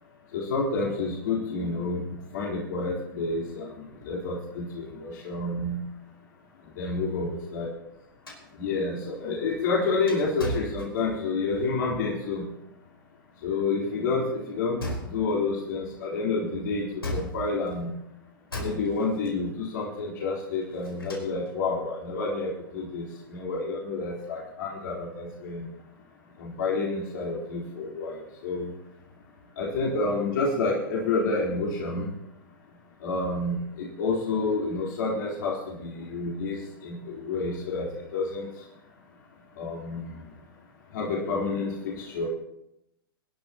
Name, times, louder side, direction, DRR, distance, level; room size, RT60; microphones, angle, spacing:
voice 1, 0.3-5.8 6.8-7.7 8.6-12.4 13.4-14.8 15.1-17.9 18.6-23.0 23.3-25.6 26.4-28.7 29.6-32.1 33.0-37.9 38.1-38.5 39.6-40.1 40.9-42.3, left 3 dB, 55° left, -4 dB, 3.9 m, -29 dB
sound 1, 8.3-11.4 14.8-15.5 17.0-17.8 18.5-19.3 20.6-21.5, equal, 90° left, 4.3 m, -36 dB
25.5 x 12.0 x 3.0 m, 0.83 s
figure-of-eight pair, 105°, 12 cm